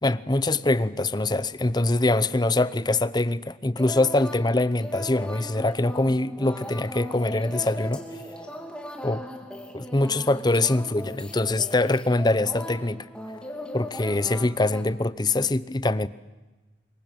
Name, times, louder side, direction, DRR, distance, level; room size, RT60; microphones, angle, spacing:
voice 1, 0.0-8.0 9.0-9.2 9.7-13.1 13.7-16.1, left 2 dB, 25° left, 0.8 m, -24 dB
sound 1, 3.8-14.8, left 1 dB, 5° left, 3.0 m, -38 dB
25.5 x 23.0 x 8.8 m
head